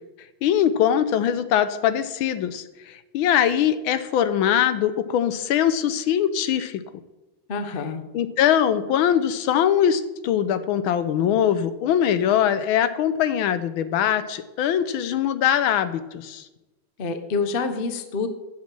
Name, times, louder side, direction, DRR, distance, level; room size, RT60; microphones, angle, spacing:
voice 1, 0.4-6.8 8.1-16.4, left 9 dB, 75° left, 12 dB, 1.4 m, -22 dB
voice 2, 7.5-8.0 17.0-18.3, left 4 dB, 60° left, 9 dB, 0.5 m, -27 dB
8.4 x 7.5 x 7.5 m, 1.0 s
omnidirectional pair, 2.4 m